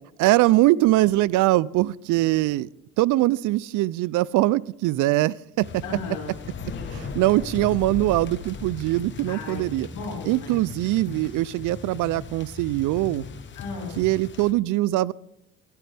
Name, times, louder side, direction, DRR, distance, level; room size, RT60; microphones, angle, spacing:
voice 1, 0.2-2.7 3.0-5.8 6.9-9.9 10.3-13.2 14.0-15.1, right 17 dB, 60° right, 23 dB, 0.4 m, -22 dB
sound 1, 5.6-14.5, left 5 dB, 30° left, 1.0 m, -38 dB
voice 2, 5.8-7.1 9.3-10.6 13.5-14.0, left 4 dB, 60° left, -5 dB, 4.4 m, -36 dB
18.0 x 13.0 x 3.4 m, 0.84 s
cardioid pair, 135°, 36 cm